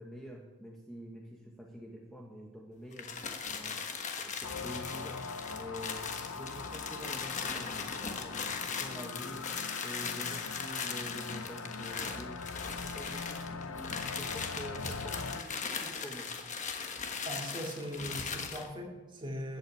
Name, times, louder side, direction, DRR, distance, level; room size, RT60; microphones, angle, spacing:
voice 1, 0.0-3.1 3.5-3.8 4.2-5.2 5.5-8.4 8.7-9.5 9.8-16.3, equal, ahead, 0 dB, 1.1 m, -47 dB
sound 1, 2.9-18.7, left 5 dB, 35° left, 1.3 m, -39 dB
sound 2, 4.4-15.4, left 4 dB, 60° left, 0.7 m, -42 dB
voice 2, 17.2-19.6, equal, 20° right, 1 dB, 2.3 m, -40 dB
14.0 x 8.3 x 9.2 m, 1.3 s
head